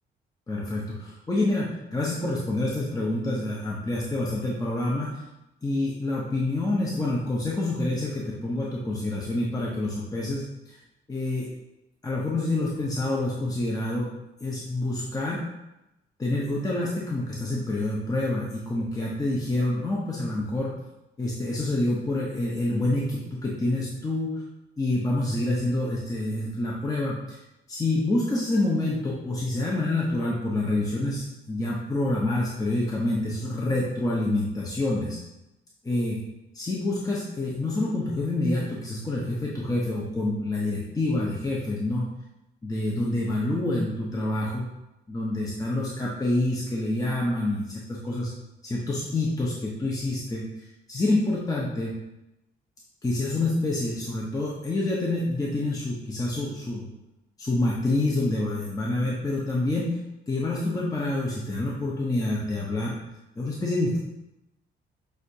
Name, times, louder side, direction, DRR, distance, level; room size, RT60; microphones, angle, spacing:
voice 1, 0.5-5.2 5.6-10.8 11.1-11.5 12.0-14.1 14.4-15.4 16.2-20.7 21.2-24.3 24.8-27.4 27.7-35.2 35.8-36.2 36.5-42.1 42.6-44.6 45.1-48.3 48.6-50.4 50.9-51.9 53.0-56.9 57.4-60.0 60.3-63.0 63.4-64.0, left 2 dB, 20° left, -4 dB, 0.8 m, -27 dB
6.2 x 2.5 x 2.8 m, 0.92 s
cardioid pair, 90°, 20 cm